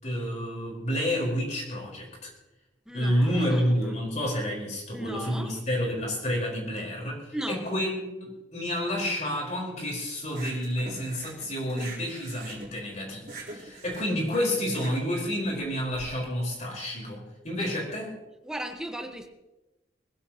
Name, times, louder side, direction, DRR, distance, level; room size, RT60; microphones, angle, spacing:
voice 1, 0.0-2.3 2.9-18.1, equal, 40° left, -2 dB, 4.4 m, -29 dB
voice 2, 2.9-3.6 4.9-5.5 7.3-7.6 17.6-17.7 18.4-19.3, right 1 dB, 5° right, 3 dB, 1.3 m, -36 dB
sound 1, 10.3-16.0, right 2 dB, 45° right, 3.7 m, -43 dB
22.0 x 15.5 x 3.0 m, 1.0 s
head